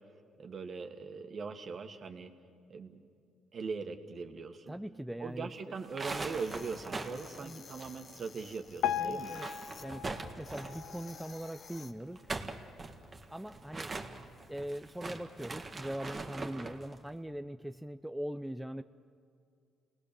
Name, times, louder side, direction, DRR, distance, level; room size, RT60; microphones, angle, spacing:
voice 1, 0.4-2.3 2.7-3.0 3.5-4.7 5.2-9.3, right 4 dB, 45° right, 6 dB, 1.8 m, -40 dB
voice 2, 4.7-5.8 7.4-7.6 8.8-9.5 9.8-10.1 10.4-12.2 13.3-13.9 14.5-18.8, right 1 dB, 5° right, 8 dB, 0.6 m, -41 dB
sound 1, 5.8-8.4 8.6-8.7 9.1-10.9 12.0-16.8, right 3 dB, 30° right, 1.8 m, -42 dB
sound 2, 6.0-9.9 10.4-11.9, left 5 dB, 45° left, 1.1 m, -53 dB
Piano, 8.8-11.9 12.4-12.6 12.9-13.0 13.7-13.8 14.4-14.5, left 10 dB, 80° left, 0.6 m, -38 dB
29.0 x 19.5 x 7.0 m, 2.3 s
cardioid pair, 80°, 0 cm